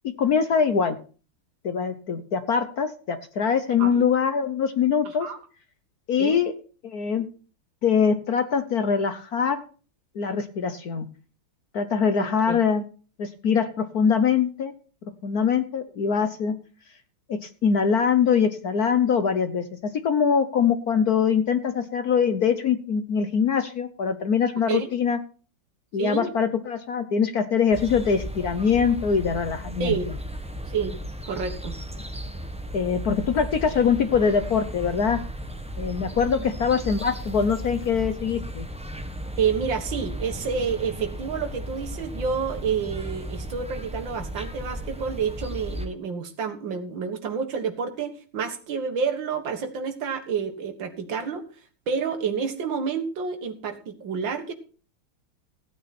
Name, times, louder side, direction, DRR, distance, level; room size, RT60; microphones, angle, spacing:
voice 1, 0.2-1.0 1.6-5.3 6.1-6.5 6.8-7.3 7.8-9.6 10.1-11.1 11.7-12.8 13.2-14.7 15.2-16.5 17.3-19.6 20.0-25.2 25.9-29.9 32.7-35.2 35.8-38.7, left 6 dB, 55° left, 10 dB, 1.3 m, -23 dB
voice 2, 12.2-12.6 24.7-24.9 26.0-26.3 29.8-30.1 30.7-31.0 31.3-31.8 39.4-51.4 51.9-54.5, right 6 dB, 65° right, 6 dB, 2.4 m, -29 dB
sound 1, 27.7-45.9, right 1 dB, 5° right, 0.8 m, -35 dB
16.0 x 9.2 x 4.3 m, 0.38 s
omnidirectional pair, 2.3 m